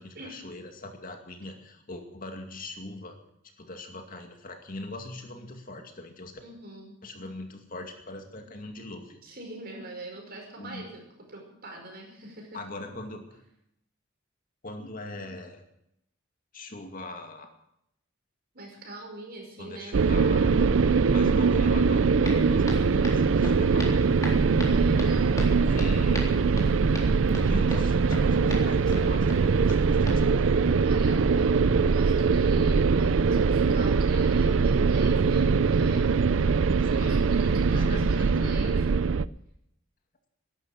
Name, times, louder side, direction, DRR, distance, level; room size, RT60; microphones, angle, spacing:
voice 1, 0.0-3.2 3.6-6.3 7.0-9.2 10.6-10.9 12.5-13.4 14.6-15.6 16.5-17.5 19.6-20.7 21.1-24.1 25.6-26.3 27.3-30.6 36.8-38.6, left 2 dB, 45° left, 4 dB, 2.2 m, -42 dB
voice 2, 6.4-7.0 9.2-11.0 11.3-12.6 18.5-20.1 24.6-25.8 30.8-36.2 36.8-38.8, right 2 dB, 55° right, 1 dB, 5.4 m, -43 dB
sound 1, 19.9-39.3, right 5 dB, 85° right, 0.5 m, -22 dB
sound 2, 20.7-25.5, equal, 20° right, 1.8 m, -45 dB
Walk footsteps, 22.2-30.1, left 1 dB, 15° left, 3.7 m, -39 dB
13.5 x 11.5 x 9.3 m, 0.79 s
head